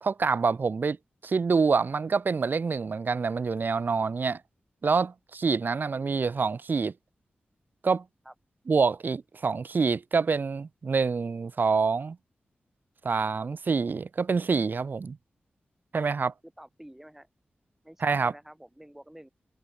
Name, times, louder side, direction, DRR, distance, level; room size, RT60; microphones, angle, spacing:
voice 1, 0.0-1.0 1.2-4.4 4.8-6.9 7.8-8.0 8.7-12.2 13.0-15.2 15.9-16.3 18.0-18.3, right 5 dB, 55° right, 0.6 m, -26 dB
voice 2, 16.4-17.3 17.8-19.3, right 1 dB, 10° right, 6.7 m, -49 dB
cardioid pair, 65°, 4 cm